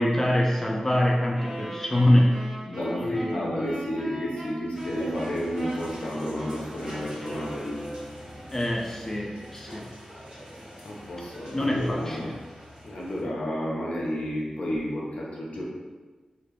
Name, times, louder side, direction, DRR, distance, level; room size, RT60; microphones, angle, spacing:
voice 1, 0.0-2.5 3.0-3.5 8.5-9.9 11.5-12.4, left 1 dB, 15° left, -1 dB, 0.3 m, -24 dB
Wind instrument woodwind instrument, 1.3-8.3, equal, 20° right, 1.0 m, -39 dB
voice 2, 2.6-7.9 10.8-12.3 12.8-15.6, equal, 70° left, -4 dB, 0.7 m, -31 dB
sound 1, 4.7-13.2, equal, 45° right, 1.2 m, -44 dB
3.2 x 2.4 x 3.0 m, 1.3 s
wide cardioid pair, 120°, 2 cm